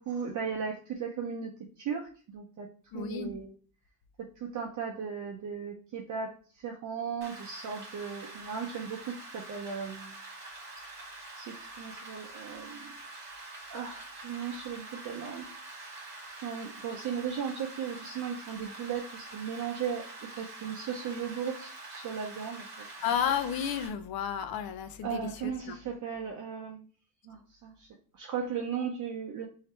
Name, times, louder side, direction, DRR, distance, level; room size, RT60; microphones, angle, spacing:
voice 1, 0.0-1.5 1.8-2.7 2.9-3.6 4.2-10.1 11.3-12.9 13.7-16.0 16.4-22.7 25.0-26.9 27.2-27.9 28.1-29.5, right 7 dB, 45° right, 1 dB, 0.6 m, -37 dB
voice 2, 2.9-3.3 23.0-25.8, left 8 dB, 55° left, 10 dB, 0.6 m, -32 dB
Rain, 7.2-23.9, right 2 dB, 25° right, 1.6 m, -46 dB
3.4 x 2.7 x 4.2 m, 0.41 s
cardioid pair, 150°, 43 cm